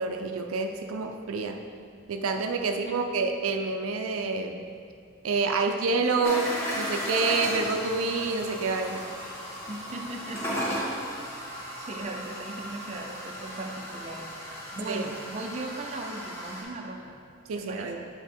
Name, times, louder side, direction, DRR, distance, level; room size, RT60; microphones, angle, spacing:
voice 1, 0.0-1.6 2.1-4.6 5.2-9.0 14.9-15.0 17.5-18.0, right 4 dB, 85° right, 5 dB, 0.5 m, -28 dB
sound 1, 6.2-16.6, equal, 10° left, 1.4 m, -35 dB
voice 2, 9.7-10.9 11.4-17.2 17.5-18.1, right 2 dB, 30° right, 1 dB, 0.5 m, -38 dB
8.1 x 3.7 x 4.3 m, 2.3 s
head